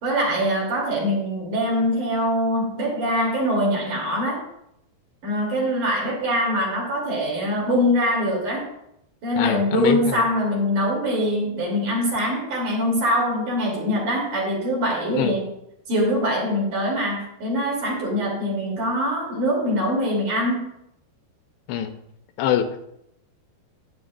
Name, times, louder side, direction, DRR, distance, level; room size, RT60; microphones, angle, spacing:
voice 1, 0.0-4.4 5.2-8.7 9.2-15.5 15.9-20.7, equal, 50° right, -3 dB, 4.1 m, -23 dB
voice 2, 9.4-10.2 15.1-15.3 21.7-21.9 22.4-22.9, left 10 dB, 85° left, 7 dB, 2.8 m, -24 dB
12.0 x 9.4 x 2.4 m, 0.79 s
omnidirectional pair, 4.9 m